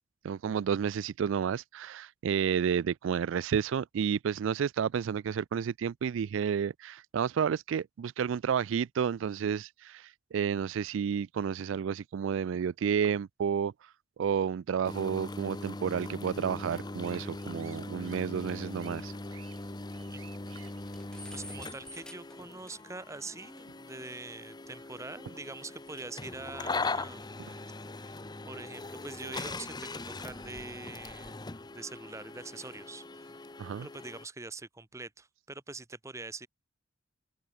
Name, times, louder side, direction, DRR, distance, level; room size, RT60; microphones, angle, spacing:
voice 1, 0.2-13.9 14.2-19.1 33.6-33.9, right 7 dB, 65° right, 0.3 m, -31 dB
sound 1, 14.8-34.3, left 3 dB, 20° left, 0.8 m, -41 dB
sound 2, 17.0-22.0, right 10 dB, 85° right, 5.0 m, -57 dB
sound 3, 20.7-23.1 23.6-23.7 25.5-26.3 26.5-29.2 30.0-31.6 32.1-32.9, left 1 dB, 5° left, 2.0 m, -54 dB
voice 2, 21.3-27.4 27.9-28.2 28.5-31.4 31.7-33.4 33.8-36.5, right 3 dB, 15° right, 0.8 m, -44 dB
head